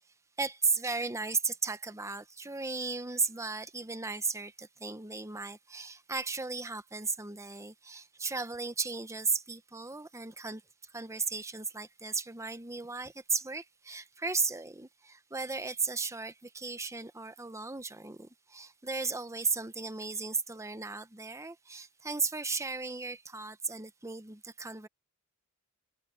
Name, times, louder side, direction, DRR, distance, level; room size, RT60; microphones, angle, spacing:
voice 1, 0.4-24.9, right 4 dB, 15° right, 0.9 m, -35 dB
head